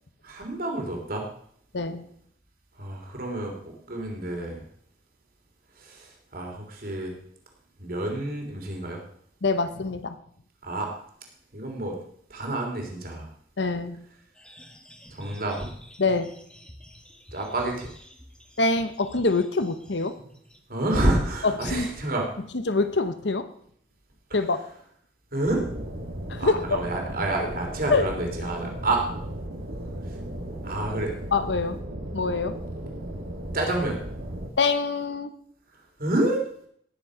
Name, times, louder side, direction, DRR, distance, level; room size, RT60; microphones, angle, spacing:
voice 1, 0.2-1.3 2.8-4.6 5.7-7.1 7.8-9.0 10.6-10.9 11.5-12.0 12.3-13.3 15.1-15.7 17.3-17.9 20.7-22.3 24.3-24.5 25.3-25.7 26.4-29.0 30.0-30.2 30.6-31.1 33.5-34.0 36.0-36.4, right 2 dB, 55° right, 1 dB, 3.3 m, -28 dB
voice 2, 1.7-2.1 9.4-10.2 13.6-14.0 16.0-16.3 18.6-20.1 21.4-21.9 22.7-23.5 24.3-24.6 26.3-26.8 27.9-28.1 31.3-31.8 32.1-32.6 34.6-35.3, left 3 dB, 70° left, 11 dB, 1.1 m, -25 dB
sound 1, 14.3-20.6, equal, 5° left, 1.2 m, -49 dB
sound 2, 25.4-34.5, right 1 dB, 85° right, 2.1 m, -35 dB
17.5 x 7.2 x 5.0 m, 0.65 s
head